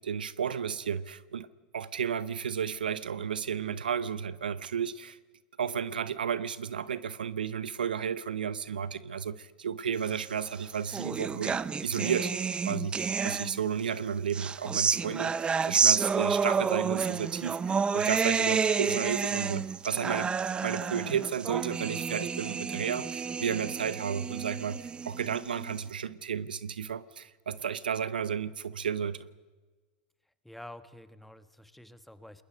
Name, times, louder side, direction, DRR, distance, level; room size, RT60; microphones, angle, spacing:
voice 1, 0.0-1.5 1.7-5.2 5.6-12.3 12.7-29.2, right 7 dB, 90° right, 17 dB, 0.8 m, -33 dB
sound 1, 10.4-13.8 14.3-25.8, right 5 dB, 20° right, 0.7 m, -30 dB
voice 2, 30.4-32.4, left 1 dB, 5° left, 12 dB, 1.4 m, -49 dB
29.5 x 21.0 x 5.1 m, 1.3 s
hypercardioid pair, 95°, 5 cm